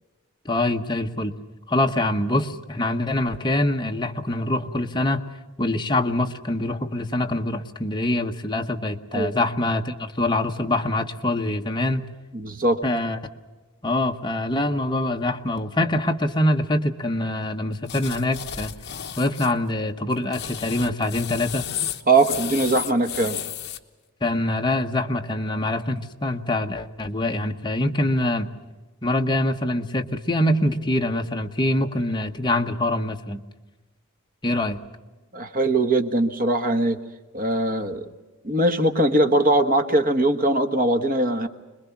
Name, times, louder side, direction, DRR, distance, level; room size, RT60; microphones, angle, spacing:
voice 1, 0.4-1.3 1.7-5.2 5.6-12.1 12.8-13.2 13.8-18.7 19.2-21.7 24.2-28.5 29.0-33.4 34.4-34.8, left 1 dB, 20° left, 4 dB, 1.1 m, -24 dB
voice 2, 12.3-12.8 22.1-23.4 35.3-37.0 37.3-38.1 38.4-41.5, right 2 dB, 40° right, 7 dB, 1.4 m, -21 dB
sound 1, 17.9-19.5 20.1-23.8, left 10 dB, 50° left, 1.1 m, -33 dB
26.0 x 21.0 x 7.2 m, 1.2 s
head